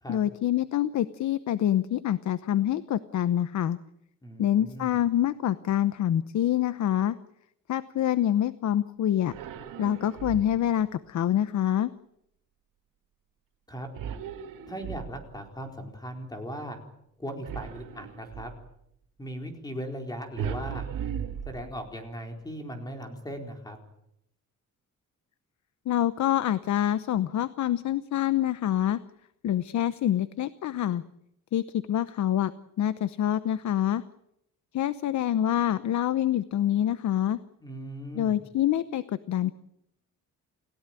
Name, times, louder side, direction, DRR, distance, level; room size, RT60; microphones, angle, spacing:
voice 1, 0.1-3.8 4.4-7.2 7.7-9.3 9.8-11.9 25.9-29.0 29.4-31.0 31.5-32.5 32.8-34.0 34.7-37.4 38.1-39.5, left 11 dB, 60° left, 14 dB, 0.9 m, -26 dB
voice 2, 4.2-4.9 13.7-13.9 14.7-16.8 17.2-18.5 19.2-20.9 21.5-23.8 37.6-38.4, equal, 10° left, 4 dB, 4.3 m, -38 dB
sound 1, 9.2-10.8 13.9-15.5 17.4-18.7 20.4-22.1, right 8 dB, 85° right, 2.2 m, -37 dB
29.5 x 16.5 x 9.1 m, 0.79 s
cardioid pair, 160°, 32 cm